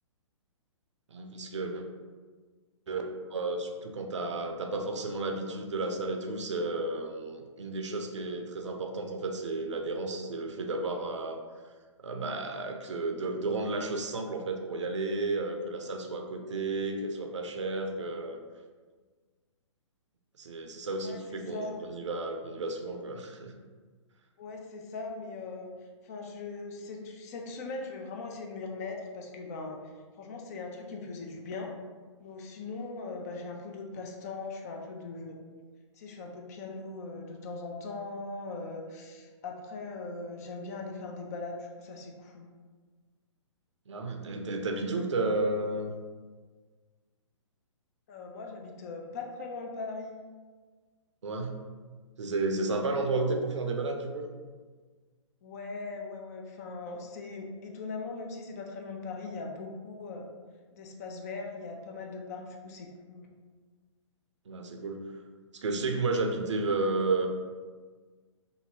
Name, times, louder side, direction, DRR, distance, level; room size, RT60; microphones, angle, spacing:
voice 1, 1.1-1.9 2.9-3.0 3.3-11.4 12.0-18.4 20.4-23.5 43.9-45.9 51.2-51.6 52.2-54.3 64.5-65.1 65.5-67.3, right 2 dB, 65° right, 3 dB, 0.5 m, -32 dB
voice 2, 21.0-21.8 24.4-25.7 26.0-31.7 32.2-35.4 35.9-42.5 48.1-50.2 55.4-60.3 60.7-63.3, left 3 dB, 30° left, 2 dB, 0.3 m, -40 dB
2.7 x 2.6 x 2.7 m, 1.5 s
figure-of-eight pair, 125°, 16 cm